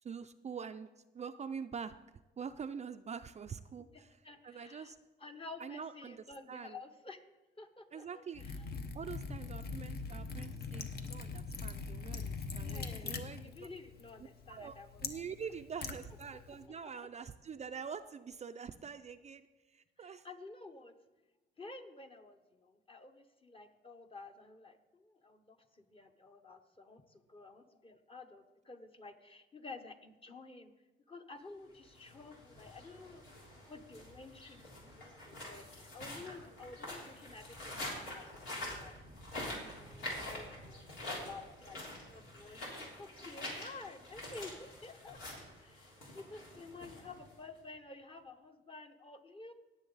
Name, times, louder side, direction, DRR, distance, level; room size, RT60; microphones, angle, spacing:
voice 1, 0.0-0.9 1.1-2.0 2.4-5.0 5.6-6.8 7.9-8.4 8.9-13.7 14.5-14.8 15.0-20.3, right 6 dB, 35° right, 9 dB, 0.4 m, -45 dB
voice 2, 3.9-4.9 5.2-7.3 7.6-8.6 12.6-15.3 16.6-17.1 20.0-21.0 21.6-30.7 31.1-33.2 33.7-39.0 39.4-45.2 45.6-49.5, left 3 dB, 25° left, 6 dB, 1.1 m, -52 dB
Liquid, 8.3-16.6, left 4 dB, 55° left, 1.0 m, -43 dB
sound 1, 31.9-47.6, left 1 dB, 85° left, 3.6 m, -46 dB
18.0 x 7.0 x 4.0 m, 1.1 s
cardioid pair, 90°, 20 cm